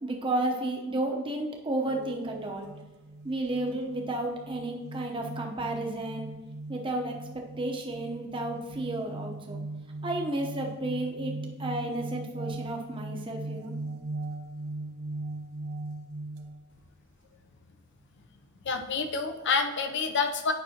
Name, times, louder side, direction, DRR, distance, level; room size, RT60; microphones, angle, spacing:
voice 1, 0.0-2.7 3.2-6.3 6.7-9.6 10.0-13.7, right 1 dB, 25° right, 1 dB, 0.8 m, -32 dB
sound 1, 1.8-16.6, right 2 dB, 75° right, 0.6 m, -39 dB
voice 2, 18.7-20.5, left 5 dB, 55° left, 6 dB, 0.6 m, -28 dB
9.4 x 5.5 x 2.8 m, 1.1 s
head